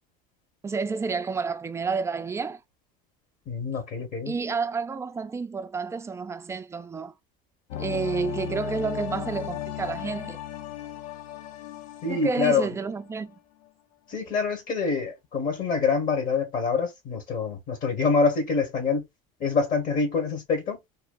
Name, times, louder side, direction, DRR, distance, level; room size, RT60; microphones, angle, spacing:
voice 1, 0.6-2.6 4.3-7.1 7.8-10.4 12.1-13.3, right 4 dB, 15° right, 0.4 m, -30 dB
voice 2, 3.5-4.3 12.0-12.6 14.1-19.0 19.4-20.8, left 4 dB, 45° left, 1.5 m, -26 dB
sound 1, 7.7-13.4 13.6-13.7, left 11 dB, 75° left, 0.5 m, -37 dB
3.2 x 2.3 x 2.4 m
supercardioid pair, 110°, 19 cm